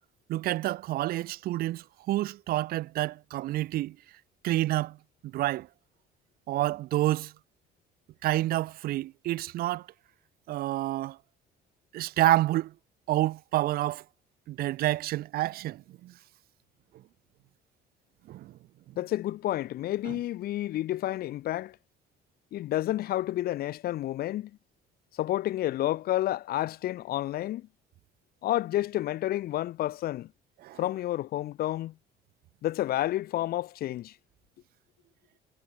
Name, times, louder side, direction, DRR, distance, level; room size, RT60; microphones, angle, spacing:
voice 1, 0.3-4.0 4.4-5.0 5.2-5.7 6.5-7.3 8.2-9.9 10.5-11.2 11.9-12.7 13.1-14.0 14.5-16.1 18.3-18.5 20.1-20.2 30.6-30.8, right 15 dB, 65° right, 0.5 m, -28 dB
voice 2, 19.0-21.8 22.5-24.5 25.1-27.7 28.4-30.3 30.8-31.9 32.6-34.1, left 14 dB, 65° left, 0.8 m, -30 dB
cardioid pair, 110°, 17 cm